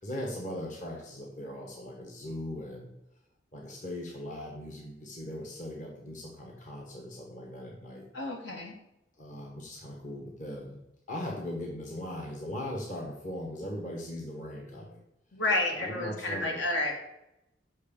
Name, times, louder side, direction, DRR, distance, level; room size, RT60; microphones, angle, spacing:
voice 1, 0.0-2.9 3.5-8.0 9.2-10.8 11.1-15.0 15.7-16.6, left 1 dB, 40° left, -1 dB, 1.5 m, -39 dB
voice 2, 8.1-8.8 15.3-16.9, left 2 dB, 70° left, 1 dB, 2.1 m, -30 dB
6.4 x 6.1 x 7.0 m, 0.88 s
head